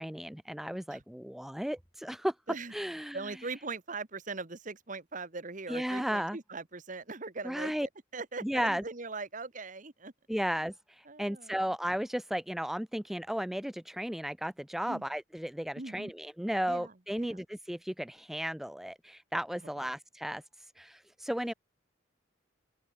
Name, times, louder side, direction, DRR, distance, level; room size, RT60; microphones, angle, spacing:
voice 1, 0.0-2.3 2.7-3.2 5.7-6.4 7.4-7.9 8.4-8.8 10.3-20.4 20.8-21.5, equal, ahead, 0.4 m, -34 dB
voice 2, 3.1-10.1 11.0-11.6 14.9-15.0 15.8-16.1 16.7-17.4 19.8-19.9, right 3 dB, 40° right, 1.4 m, -41 dB
open air
head